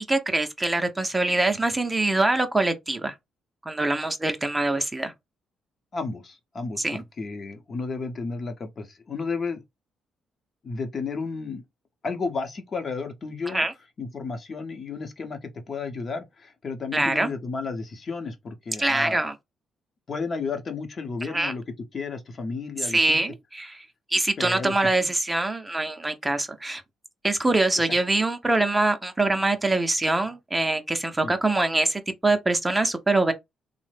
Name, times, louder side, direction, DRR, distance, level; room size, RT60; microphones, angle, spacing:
voice 1, 0.0-3.1 3.7-5.1 6.8-7.0 13.5-13.7 16.9-17.3 18.8-19.3 21.3-21.5 22.8-26.8 27.2-33.3, right 2 dB, 15° right, 0.5 m, -24 dB
voice 2, 5.9-9.6 10.6-11.6 12.0-13.7 14.0-19.3 20.1-21.6 21.9-23.2 24.4-24.8 31.2-31.4, left 4 dB, 45° left, 0.7 m, -32 dB
3.1 x 2.0 x 3.2 m
cardioid pair, 90°, 0 cm